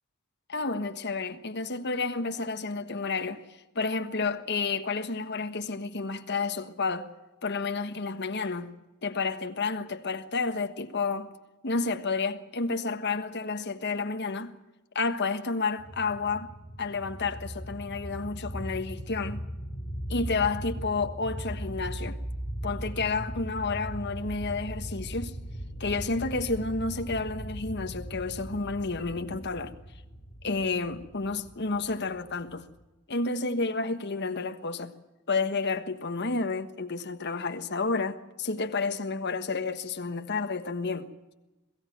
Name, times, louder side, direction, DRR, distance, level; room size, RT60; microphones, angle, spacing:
voice 1, 0.5-3.4 3.7-7.1 7.4-8.7 9.0-11.3 11.6-14.5 14.9-16.5 16.8-19.4 20.1-22.2 22.6-25.3 25.8-29.7 30.4-32.6 33.1-34.9 35.3-41.1, left 4 dB, 50° left, 1.3 m, -30 dB
sound 1, 15.8-32.8, equal, 20° left, 3.6 m, -39 dB
22.0 x 15.0 x 9.3 m
head